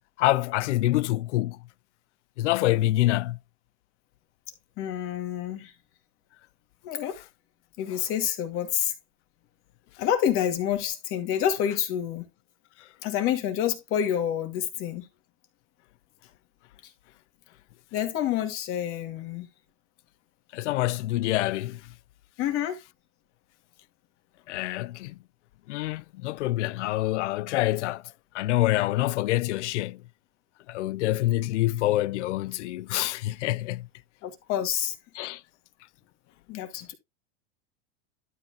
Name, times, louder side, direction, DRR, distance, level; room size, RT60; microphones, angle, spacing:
voice 1, 0.2-1.6 2.4-3.4 20.5-21.8 24.5-25.1 25.7-28.0 28.3-30.0 30.7-33.9 35.2-35.4, left 16 dB, 90° left, 0.6 m, -26 dB
voice 2, 4.8-5.7 6.8-7.2 7.8-8.9 10.0-12.3 13.0-15.0 17.9-19.5 22.4-22.8 34.2-34.9 36.5-36.9, left 10 dB, 40° left, 2.3 m, -28 dB
12.0 x 5.8 x 2.9 m
supercardioid pair, 155°, 34 cm